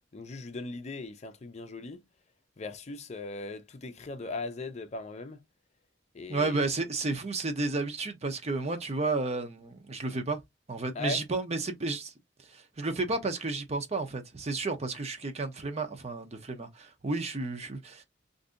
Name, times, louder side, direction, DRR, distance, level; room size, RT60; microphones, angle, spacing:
voice 1, 0.1-2.0 2.6-5.4 6.1-6.6 10.9-11.2, left 3 dB, 40° left, 0.5 m, -39 dB
voice 2, 6.3-10.4 10.7-12.1 12.5-18.0, right 3 dB, 35° right, 0.7 m, -32 dB
2.6 x 2.6 x 3.6 m
head